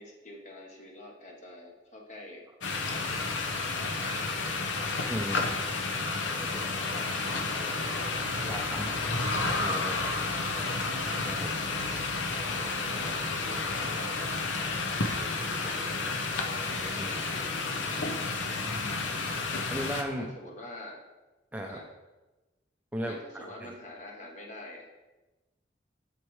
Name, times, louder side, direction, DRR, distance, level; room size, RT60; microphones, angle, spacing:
voice 1, 0.0-2.5 2.9-3.4 3.8-4.4 5.4-5.7 6.4-7.2 7.4-7.9 8.3-8.6 9.0-9.2 10.0-10.8 11.5-18.7 19.3-19.5 20.2-21.0 21.7-21.9 23.0-24.9, left 1 dB, 40° left, 0 dB, 1.2 m, -46 dB
sound 1, 2.6-20.0, left 3 dB, 85° left, 0.8 m, -31 dB
voice 2, 5.1-5.5 8.4-8.9 9.6-10.1 11.2-11.5 16.8-17.1 18.6-19.0 19.7-20.3 21.5-21.8 22.9-23.2 23.6-23.7, equal, 10° right, 1 dB, 0.5 m, -36 dB
7.8 x 7.3 x 3.2 m, 1.1 s
head